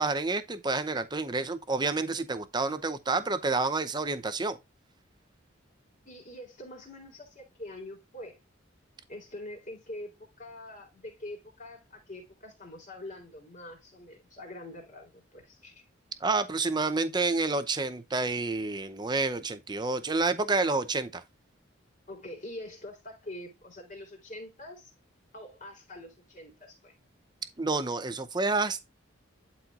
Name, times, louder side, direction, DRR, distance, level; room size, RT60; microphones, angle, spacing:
voice 1, 0.0-4.6 16.2-21.2 27.6-28.9, right 3 dB, 20° right, 0.7 m, -29 dB
voice 2, 6.1-8.4 9.1-15.8 22.1-24.9 25.3-27.0, left 1 dB, 40° left, 3.6 m, -44 dB
12.0 x 4.4 x 2.5 m
head